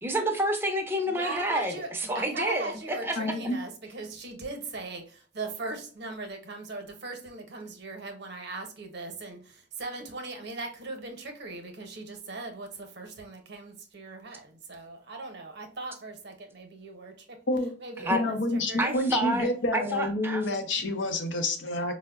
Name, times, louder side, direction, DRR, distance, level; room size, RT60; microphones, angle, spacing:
voice 1, 0.0-3.3 18.0-18.2 18.8-20.4, right 1 dB, 15° right, 3 dB, 0.5 m, -29 dB
voice 2, 1.1-1.9 2.1-17.4 17.8-19.2, right 3 dB, 65° right, 4 dB, 0.7 m, -39 dB
voice 3, 3.2-3.6 17.5-17.7 18.1-21.9, left 1 dB, 80° left, 6 dB, 0.6 m, -28 dB
4.4 x 2.0 x 2.3 m, 0.41 s
head